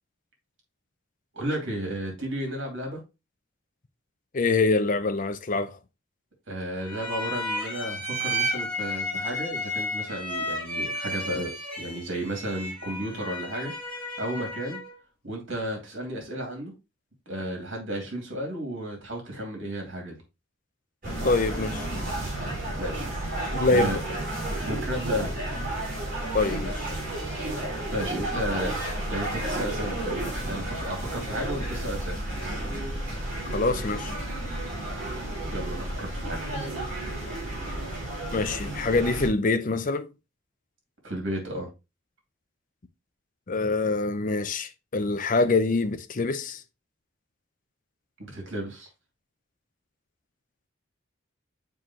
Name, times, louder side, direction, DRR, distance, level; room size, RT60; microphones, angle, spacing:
voice 1, 1.3-3.0 6.5-14.8 15.2-16.7 17.3-20.1 22.8-24.0 24.6-25.3 27.9-28.7 29.1-32.2 35.5-36.4 41.0-41.7 48.2-48.9, right 1 dB, 65° right, 2.6 m, -33 dB
voice 2, 4.3-5.8 21.2-21.9 23.5-24.0 26.3-26.9 33.5-34.1 38.3-40.1 43.5-46.6, left 3 dB, 40° left, 0.6 m, -25 dB
sound 1, 6.8-15.0, equal, 5° left, 2.8 m, -32 dB
sound 2, 21.0-39.3, right 1 dB, 40° right, 3.9 m, -32 dB
7.2 x 4.6 x 3.0 m
head